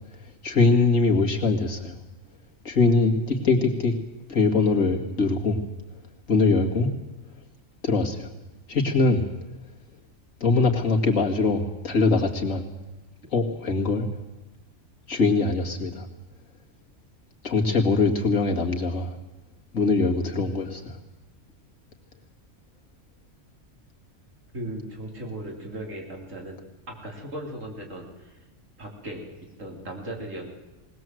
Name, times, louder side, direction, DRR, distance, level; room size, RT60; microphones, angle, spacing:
voice 1, 0.4-2.0 2.6-3.9 4.3-5.6 6.3-6.9 7.8-8.3 8.7-9.3 10.4-12.7 13.3-14.1 15.1-16.1 17.4-19.1 19.7-21.0, left 3 dB, 90° left, 1 dB, 2.6 m, -22 dB
voice 2, 24.5-28.4 28.8-29.3 29.6-30.5, right 1 dB, 75° right, 0 dB, 4.0 m, -37 dB
20.0 x 19.5 x 7.8 m, 1.1 s
omnidirectional pair, 1.3 m